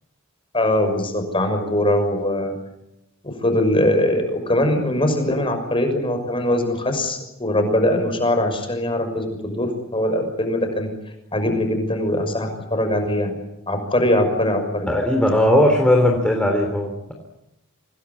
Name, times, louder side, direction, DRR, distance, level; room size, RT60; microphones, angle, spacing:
voice 1, 0.5-2.5 3.4-10.9 11.3-13.4 13.7-14.9, left 1 dB, 25° left, 6 dB, 6.3 m, -21 dB
voice 2, 14.9-17.1, left 1 dB, 5° left, 1 dB, 3.4 m, -18 dB
26.5 x 19.5 x 9.8 m, 0.87 s
head